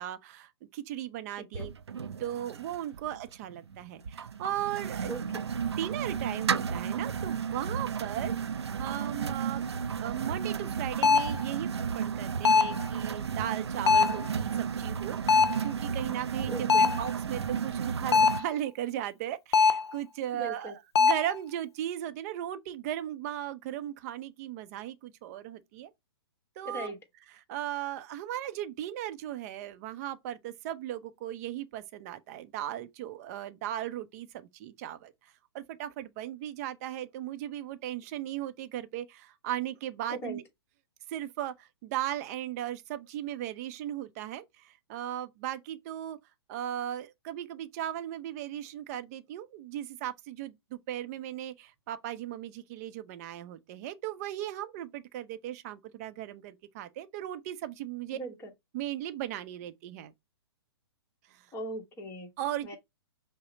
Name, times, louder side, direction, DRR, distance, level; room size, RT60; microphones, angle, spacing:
voice 1, 0.0-1.7 2.2-5.2 5.8-9.7 10.0-25.9 26.6-26.9 27.3-40.4 41.1-46.2 46.5-58.2 58.7-60.1 61.3-61.4 62.4-62.8, right 12 dB, 40° right, 0.6 m, -37 dB
sound 1, 1.5-18.4, right 7 dB, 80° right, 0.4 m, -33 dB
sound 2, 11.0-11.4 12.4-12.8 13.9-14.3 15.3-15.6 16.7-17.1 18.1-18.5 19.5-19.9 20.9-21.3, left 5 dB, 80° left, 0.4 m, -22 dB
voice 2, 16.5-16.9 20.3-20.7 26.6-27.0 40.1-40.4 58.1-58.5 61.5-62.3 62.6-62.8, right 1 dB, 20° left, 1.2 m, -38 dB
5.5 x 2.1 x 4.0 m
figure-of-eight pair, 120°, 14 cm